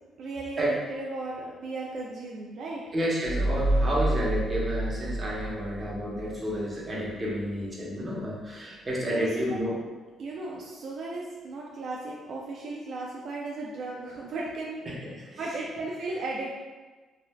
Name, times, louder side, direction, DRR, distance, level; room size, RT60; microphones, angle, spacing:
voice 1, 0.2-2.8 9.1-9.6 10.2-14.9 15.4-16.5, right 2 dB, 65° right, -3 dB, 0.4 m, -36 dB
voice 2, 2.9-9.7 14.9-15.5, equal, 25° right, -5 dB, 0.9 m, -30 dB
sound 1, 3.2-6.6, right 1 dB, 90° left, 0.7 m, -29 dB
3.3 x 2.4 x 2.2 m, 1.3 s
cardioid pair, 90°, 0 cm